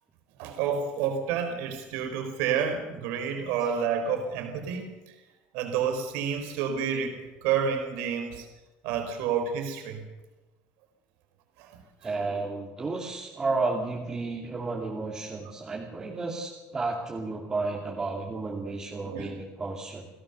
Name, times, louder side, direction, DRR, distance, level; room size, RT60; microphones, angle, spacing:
voice 1, 0.4-4.8 5.5-8.5 8.8-10.0 19.1-19.3, right 7 dB, 90° right, 5 dB, 4.3 m, -29 dB
voice 2, 12.0-20.1, right 3 dB, 15° right, -2 dB, 2.7 m, -32 dB
29.0 x 18.0 x 6.9 m, 1.1 s
cardioid pair, 170°, 4 cm